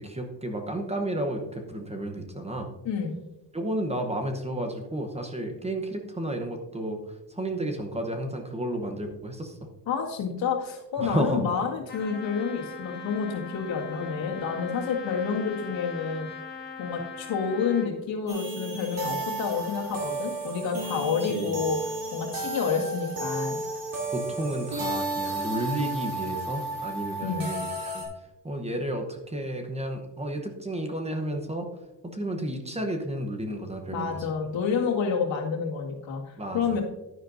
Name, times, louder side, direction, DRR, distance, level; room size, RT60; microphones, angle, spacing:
voice 1, 0.0-2.7 3.5-7.0 7.3-9.6 11.0-11.4 21.2-21.6 24.1-28.0 28.4-31.7 32.1-34.2 36.4-36.8, right 1 dB, 15° right, 4 dB, 0.8 m, -32 dB
voice 2, 2.8-3.2 9.9-16.3 16.8-21.8 22.1-23.6 27.2-27.5 33.9-36.8, left 6 dB, 90° left, -1 dB, 2.0 m, -29 dB
Trumpet, 11.9-17.9, left 5 dB, 25° left, 1.2 m, -41 dB
sound 1, 18.3-28.0, right 2 dB, 50° right, 2.7 m, -33 dB
11.0 x 10.0 x 2.6 m, 1.0 s
wide cardioid pair, 180°, 44 cm